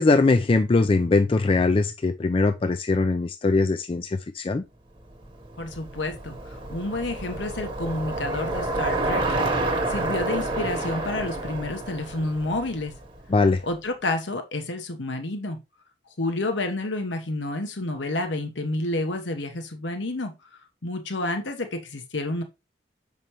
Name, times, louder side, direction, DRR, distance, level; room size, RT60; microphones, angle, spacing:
voice 1, 0.0-4.6 13.3-13.6, left 3 dB, 30° left, 0.3 m, -21 dB
Bicycle, 5.1-13.4, right 2 dB, 30° right, 1.1 m, -29 dB
voice 2, 5.6-12.9 13.6-15.6 16.2-20.3 20.8-22.4, left 2 dB, 80° left, 1.1 m, -30 dB
6.6 x 5.3 x 3.0 m
head